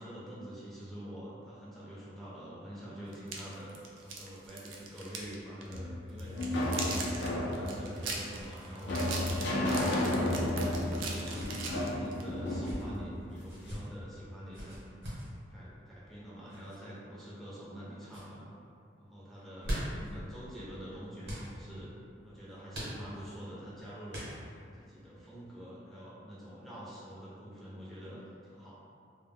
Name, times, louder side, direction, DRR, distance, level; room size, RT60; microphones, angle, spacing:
voice 1, 0.0-3.7 4.0-9.7 10.2-14.8 15.5-18.5 19.0-21.9 22.2-24.3 24.8-28.7, equal, ahead, -9 dB, 0.5 m, -46 dB
sound 1, 3.1-5.3 5.6-5.8 6.2-12.3, right 4 dB, 80° right, 0.4 m, -40 dB
sound 2, 5.7-13.8, left 1 dB, 60° left, 0.5 m, -33 dB
sound 3, 5.8-7.0 7.3-7.4 8.4-8.7 9.8-10.1 11.1-11.5 12.4-12.8 13.4-13.8 14.5-15.3 16.5-16.8 17.4-17.8 18.0-18.3 19.3-20.1 21.2-21.5 22.7-23.3 24.1-24.6, equal, 60° right, 0.9 m, -42 dB
2.2 x 2.1 x 3.4 m, 2.5 s
head